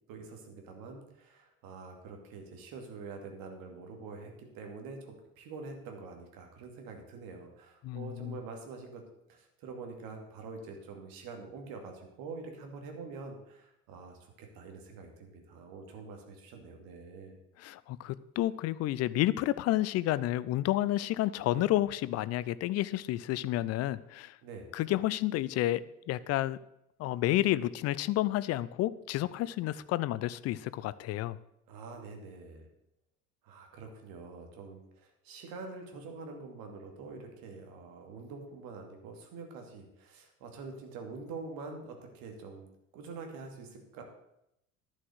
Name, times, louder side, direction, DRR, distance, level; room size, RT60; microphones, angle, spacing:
voice 1, 0.1-9.0 9.3-17.4 24.4-24.7 31.7-32.7 33.4-42.7 42.9-44.0, right 4 dB, 50° right, 3 dB, 2.7 m, -45 dB
voice 2, 7.8-8.4 17.6-24.3 24.7-25.8 26.1-26.6 27.0-31.4, left 15 dB, 35° left, 18 dB, 0.6 m, -30 dB
11.0 x 6.5 x 8.0 m, 0.82 s
figure-of-eight pair, 65°, 43 cm